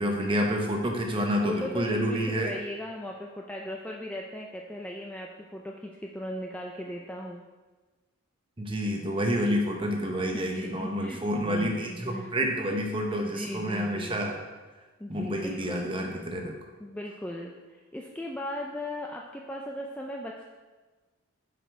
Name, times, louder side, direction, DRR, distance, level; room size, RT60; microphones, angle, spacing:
voice 1, 0.0-2.5 8.6-14.4 15.1-16.5, equal, 25° right, 2 dB, 0.9 m, -28 dB
voice 2, 1.4-7.4 10.2-14.2 15.0-15.9 16.8-20.4, left 1 dB, 5° left, -1 dB, 0.4 m, -38 dB
7.8 x 5.1 x 4.6 m, 1.3 s
head